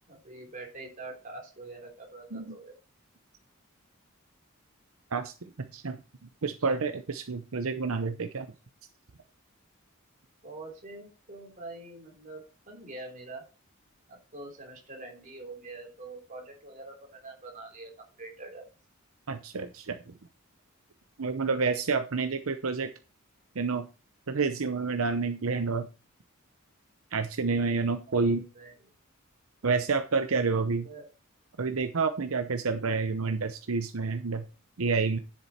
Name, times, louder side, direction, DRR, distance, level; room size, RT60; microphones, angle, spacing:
voice 1, 0.1-2.7 10.4-13.4 14.1-17.9 18.2-18.6 28.1-28.7 30.8-31.1, right 2 dB, 40° right, 0 dB, 3.4 m, -45 dB
voice 2, 5.6-6.0 6.4-8.5 19.3-20.1 21.2-22.9 23.6-23.9 24.3-25.9 27.1-28.4 29.6-30.9 31.6-34.4 34.8-35.2, right 4 dB, 75° right, 7 dB, 0.8 m, -29 dB
10.5 x 7.5 x 4.3 m, 0.34 s
head